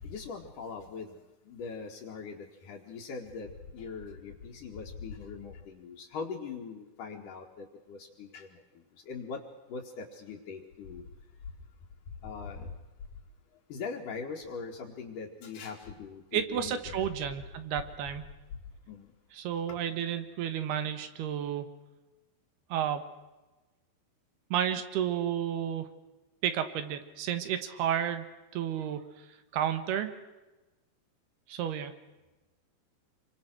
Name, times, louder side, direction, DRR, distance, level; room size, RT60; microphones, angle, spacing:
voice 1, 0.0-1.1 1.5-8.5 9.1-9.4 9.7-11.0 12.2-12.7 13.7-17.1 18.9-19.1, left 5 dB, 60° left, -3 dB, 3.3 m, -41 dB
voice 2, 16.3-18.3 19.3-21.7 22.7-23.0 24.5-25.9 26.4-28.3 28.5-29.1 29.5-30.1 31.5-31.9, right 9 dB, 85° right, 10 dB, 3.6 m, -31 dB
27.5 x 24.5 x 6.2 m, 1.1 s
omnidirectional pair, 4.5 m